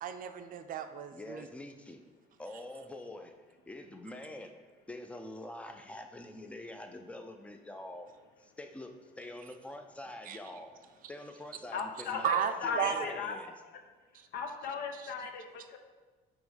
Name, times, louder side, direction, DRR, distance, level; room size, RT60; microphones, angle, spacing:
voice 1, 0.0-1.5 10.3-10.4 12.2-13.1, right 9 dB, 55° right, 9 dB, 0.4 m, -33 dB
voice 2, 1.1-2.0 2.4-3.3 3.7-8.1 8.4-12.3 12.6-13.5, left 1 dB, 5° left, 6 dB, 0.5 m, -45 dB
voice 3, 11.7-13.4 14.3-15.8, left 5 dB, 70° left, 5 dB, 0.8 m, -37 dB
6.1 x 3.1 x 5.0 m, 1.3 s
cardioid pair, 110°, 17 cm